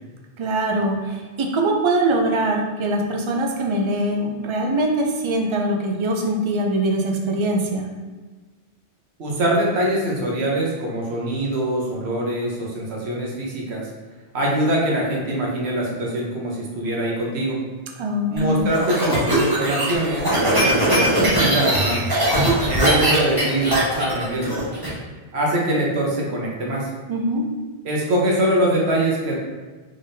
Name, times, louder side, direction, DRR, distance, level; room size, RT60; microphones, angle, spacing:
voice 1, 0.4-7.9 18.0-18.7 27.1-27.5, right 1 dB, 50° right, 1 dB, 0.3 m, -22 dB
voice 2, 9.2-13.9 14.3-17.6 18.3-22.1 22.7-24.6 25.3-26.9 27.8-29.4, right 1 dB, 80° right, -2 dB, 1.1 m, -23 dB
sound 1, 18.4-24.9, right 1 dB, 20° right, 1.2 m, -20 dB
3.8 x 3.4 x 2.6 m, 1.3 s
omnidirectional pair, 1.1 m